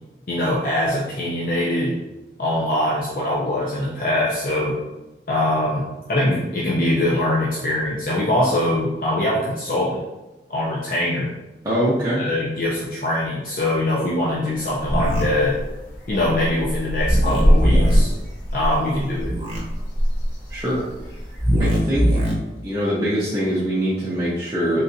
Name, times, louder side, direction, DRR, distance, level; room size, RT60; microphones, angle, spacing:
voice 1, 0.3-2.0 2.4-4.8 5.3-10.0 10.5-11.3 12.2-15.6 16.1-18.1 18.5-19.3, left 1 dB, 50° left, -5 dB, 0.5 m, -22 dB
voice 2, 11.6-12.2 20.5-20.8 21.6-22.2 22.6-24.8, equal, 15° right, -10 dB, 0.7 m, -23 dB
sound 1, 14.3-21.6, equal, 80° left, 0.9 m, -23 dB
sound 2, 14.8-15.2 17.0-18.0 19.2-19.6 21.4-22.3, equal, 35° right, 1.0 m, -21 dB
3.9 x 3.3 x 2.6 m, 1.0 s
head